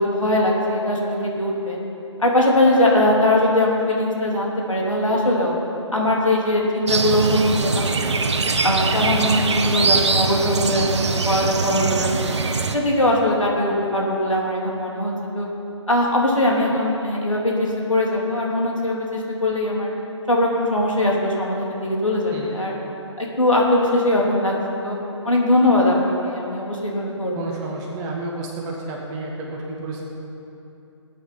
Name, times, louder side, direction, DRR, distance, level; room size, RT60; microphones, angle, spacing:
voice 1, 0.0-1.8 2.2-5.5 5.9-7.8 8.1-8.3 8.6-12.4 12.7-15.5 15.9-19.9 20.3-22.7 23.2-24.5 24.8-25.0 25.2-27.3, left 1 dB, 90° left, -3 dB, 3.4 m, -21 dB
sound 1, 6.9-12.8, right 4 dB, 65° right, 1.1 m, -22 dB
voice 2, 27.3-30.0, right 2 dB, 20° right, -2 dB, 2.0 m, -31 dB
17.0 x 9.4 x 5.8 m, 2.9 s
figure-of-eight pair, 140°, 16 cm